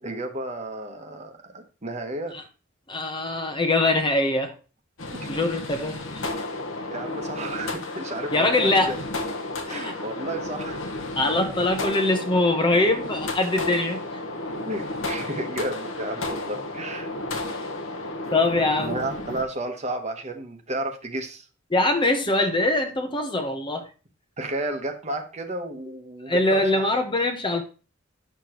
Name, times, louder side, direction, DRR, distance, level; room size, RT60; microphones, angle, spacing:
voice 1, 0.0-2.4 5.1-5.2 6.9-9.0 9.7-10.8 11.7-11.8 14.6-17.1 18.8-21.5 24.4-26.9, right 1 dB, 35° right, 1.2 m, -32 dB
voice 2, 2.9-4.5 5.2-6.3 8.3-8.9 9.7-9.9 11.2-14.0 18.3-19.0 21.7-23.9 26.3-27.6, left 2 dB, 25° left, 1.0 m, -23 dB
sound 1, 5.0-19.4, left 2 dB, 75° left, 1.2 m, -32 dB
10.0 x 6.8 x 3.1 m
head